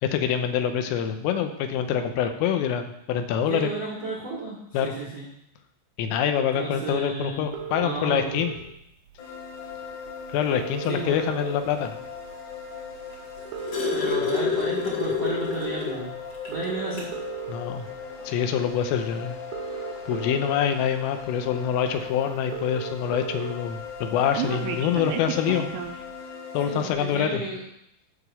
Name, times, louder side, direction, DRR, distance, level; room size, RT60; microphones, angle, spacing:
voice 1, 0.0-3.7 4.7-4.9 6.0-8.5 10.3-11.9 17.5-17.9 18.3-19.4 20.1-25.7 26.5-27.4, left 8 dB, 85° left, 7 dB, 3.5 m, -25 dB
voice 2, 3.5-5.3 6.5-7.5 7.8-8.4 10.9-11.2 13.9-16.1 16.5-17.1 26.6-27.6, right 3 dB, 60° right, -4 dB, 1.7 m, -33 dB
sound 1, 7.5-8.5 9.7-9.8 10.1-10.2 10.4-11.8 12.3-12.5 13.4-14.5 15.2-15.5 16.4-17.5 18.8-18.9 19.3-20.5 21.2-21.3 21.6-21.7 21.9-22.0 22.2-23.5 23.8-26.0, right 9 dB, 75° right, 2.8 m, -34 dB
sound 2, 9.2-26.9, left 6 dB, 70° left, 5.2 m, -39 dB
sound 3, 13.1-16.1 16.4-16.5 16.9-17.2 18.3-18.4, left 5 dB, 45° left, 1.9 m, -27 dB
12.5 x 5.0 x 6.9 m, 0.78 s
omnidirectional pair, 5.7 m